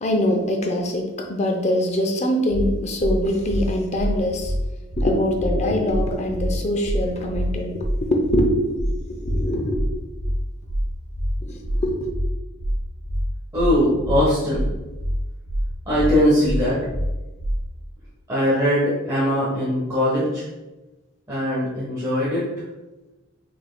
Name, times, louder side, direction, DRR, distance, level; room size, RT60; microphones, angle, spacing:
voice 1, 0.0-4.6 5.0-10.0 11.4-12.1, left 1 dB, 30° left, 2 dB, 0.5 m, -23 dB
sound 1, 2.5-2.7 3.0-3.1 3.5-3.6 3.9-4.1 4.4-4.6 4.9-5.1 5.4-5.5 5.9-6.0 6.3-6.5 6.8-7.0 7.3-7.5 7.8-7.9 8.3-8.4 8.7-8.9 9.2-9.4 9.7-9.9 10.2-10.3 10.7-10.8 11.1-11.3 11.6-11.8 12.1-12.3 12.6-12.7 13.1-13.2 13.5-13.7 14.0-14.2 14.5-14.7 15.0-15.1 15.5-15.6 15.9-16.1 16.4-16.6 16.9-17.1 17.4-17.5, equal, 50° left, 1.0 m, -25 dB
voice 2, 13.5-14.7 15.9-16.8 18.3-20.4 21.3-22.4, equal, 15° right, -10 dB, 1.1 m, -21 dB
5.6 x 4.3 x 2.2 m, 1.1 s
head